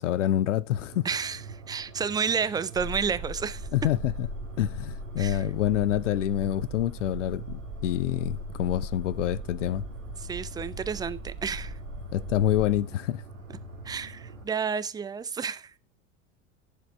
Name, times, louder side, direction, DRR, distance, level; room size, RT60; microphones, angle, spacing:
voice 1, 0.0-1.0 3.7-4.3 4.6-9.8 12.1-13.2, left 12 dB, 70° left, 0.6 m, -27 dB
sound 1, 0.7-14.4, right 3 dB, 90° right, 2.0 m, -44 dB
voice 2, 1.0-3.7 5.2-5.4 10.2-11.8 13.8-15.8, right 6 dB, 10° right, 0.4 m, -31 dB
sound 2, 2.7-12.8, right 1 dB, 70° right, 2.9 m, -39 dB
15.0 x 5.1 x 3.3 m
figure-of-eight pair, 80°, 38 cm